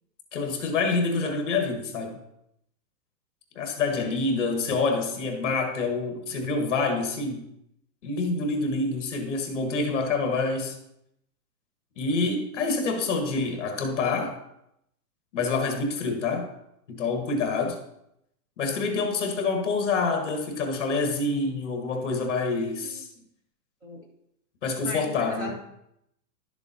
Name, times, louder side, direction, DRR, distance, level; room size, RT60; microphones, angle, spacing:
voice 1, 0.3-2.2 3.5-7.4 8.0-10.8 12.0-14.4 15.3-16.5 16.9-17.8 18.6-23.1 24.6-25.5, left 3 dB, 45° left, 4 dB, 1.3 m, -27 dB
voice 2, 24.7-25.6, left 1 dB, 20° right, -1 dB, 1.0 m, -37 dB
11.5 x 7.0 x 2.7 m, 0.79 s
hypercardioid pair, 175°, 49 cm